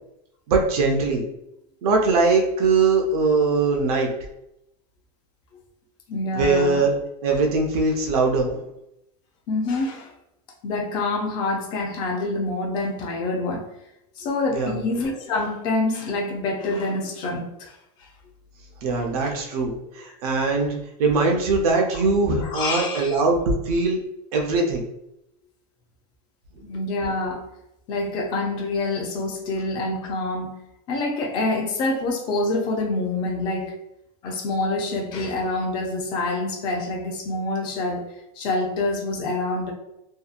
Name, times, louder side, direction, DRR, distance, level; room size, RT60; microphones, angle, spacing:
voice 1, 0.5-1.2 1.8-4.1 6.3-7.0 7.2-8.6 14.5-14.8 18.8-24.0 24.3-24.8, right 3 dB, 70° right, 1 dB, 0.6 m, -21 dB
voice 2, 6.1-6.9 9.5-10.1 10.6-13.6 14.2-17.7 18.0-18.1 19.2-19.4 22.4-23.2 26.6-27.4 27.9-30.6 30.9-33.7 34.2-38.0 38.4-39.7, left 2 dB, 25° left, 0 dB, 0.4 m, -26 dB
2.6 x 2.2 x 2.4 m, 0.84 s
supercardioid pair, 180°, 20 cm